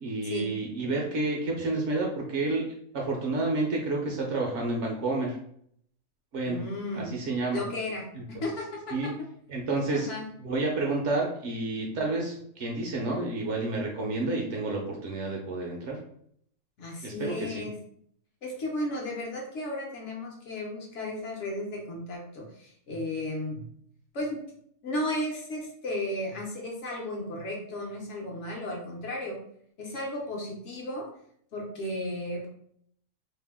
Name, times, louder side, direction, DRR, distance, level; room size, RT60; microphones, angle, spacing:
voice 1, 0.0-2.6 2.9-5.4 6.3-6.6 6.9-7.6 8.1-8.2 8.9-9.1 9.5-10.1 10.4-16.0 17.0-17.7, right 2 dB, 65° right, -1 dB, 0.8 m, -30 dB
voice 2, 6.4-7.1 7.5-8.9 9.9-10.3 16.8-17.8 18.4-23.7 24.1-24.4 24.8-29.4 29.8-31.1 31.5-32.5, left 1 dB, 60° left, -1 dB, 0.9 m, -34 dB
2.7 x 2.1 x 3.4 m, 0.67 s
omnidirectional pair, 1.5 m